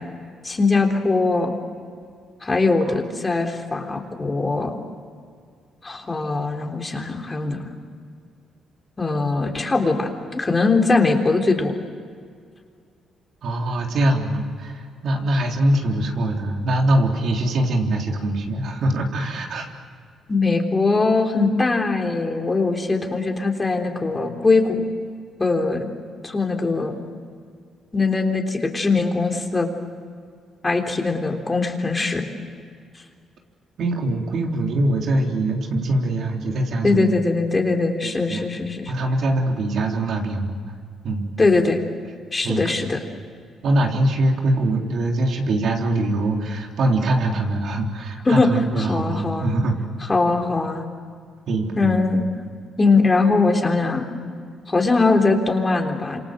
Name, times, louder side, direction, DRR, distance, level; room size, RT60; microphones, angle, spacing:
voice 1, 0.4-1.6 2.4-4.8 5.8-7.7 9.0-11.7 20.3-24.9 25.4-25.9 26.2-27.0 27.9-29.7 30.6-32.3 36.8-38.9 41.4-41.8 42.3-43.0 48.3-48.5 48.8-49.5 50.1-50.9 51.8-52.3 52.8-54.1 54.7-56.2, left 3 dB, 25° left, 3 dB, 3.6 m, -21 dB
voice 2, 13.4-19.7 33.8-37.2 38.0-38.5 38.9-40.6 41.0-41.3 42.4-42.6 43.6-49.8 51.5-52.0, right 1 dB, 65° right, 1 dB, 3.7 m, -23 dB
27.5 x 26.5 x 7.8 m, 2.2 s
cardioid pair, 90°, 0 cm